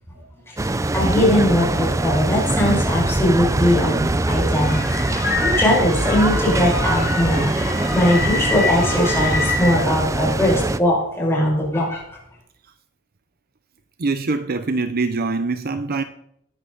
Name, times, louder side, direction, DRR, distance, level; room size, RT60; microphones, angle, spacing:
voice 1, 0.5-4.8 5.1-12.0, left 1 dB, 10° left, 6.4 m, -20 dB
sound 1, 0.6-10.8, right 2 dB, 15° right, 0.5 m, -22 dB
sound 2, 4.6-9.7, left 3 dB, 35° left, 6.7 m, -26 dB
voice 2, 14.0-16.0, right 3 dB, 45° right, 0.7 m, -23 dB
20.0 x 11.0 x 4.1 m
head